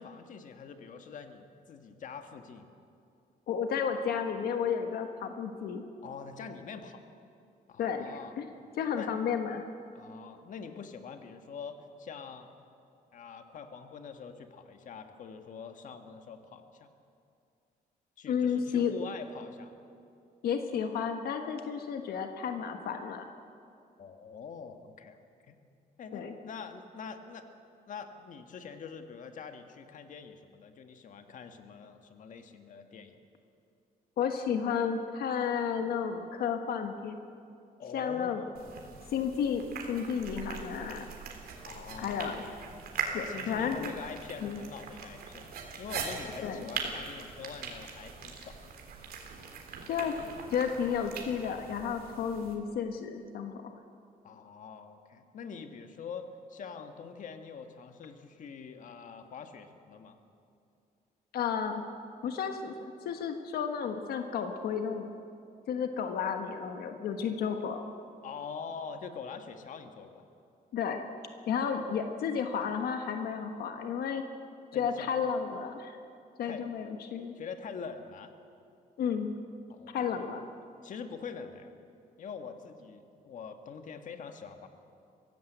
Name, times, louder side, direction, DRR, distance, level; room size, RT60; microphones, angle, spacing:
voice 1, 0.0-2.7 6.0-7.0 7.7-8.4 8.9-9.1 9.9-12.5 13.1-16.9 18.2-19.8 24.0-25.2 25.5-25.6 26.0-27.4 27.9-33.2 37.8-38.5 41.6-42.4 43.1-48.6 54.2-60.2 68.2-70.3 74.7-75.1 76.4-76.7 77.3-78.3 79.7-80.3 80.8-81.7 82.2-84.7, left 6 dB, 55° left, 6 dB, 1.6 m, -44 dB
voice 2, 3.5-5.8 7.8-8.5 8.8-9.7 18.3-18.9 20.4-23.2 26.1-26.3 34.2-37.2 37.9-38.4 39.1-41.1 42.0-42.5 43.1-43.9 44.4-44.6 46.4-46.7 49.9-50.2 50.5-53.7 61.3-61.8 62.2-65.1 65.7-67.8 70.7-71.0 71.5-74.2 74.7-76.0 76.4-77.3 79.0-79.3 79.9-80.5, left 7 dB, 85° left, 6 dB, 1.4 m, -32 dB
sound 1, 38.5-52.5, right 5 dB, 80° right, 3.4 m, -41 dB
23.5 x 16.5 x 8.1 m, 2.5 s
cardioid pair, 145°, 15 cm